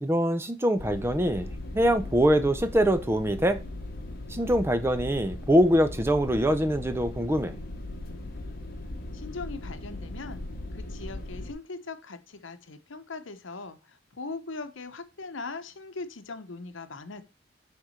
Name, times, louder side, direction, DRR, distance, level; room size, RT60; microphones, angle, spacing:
voice 1, 0.0-1.5 1.7-3.6 4.3-7.6, equal, 10° right, 0.4 m, -24 dB
sound 1, 0.8-11.5, left 1 dB, 45° left, 0.9 m, -38 dB
voice 2, 9.1-10.4 10.7-17.2, left 3 dB, 75° left, 0.8 m, -40 dB
5.9 x 3.7 x 5.6 m
head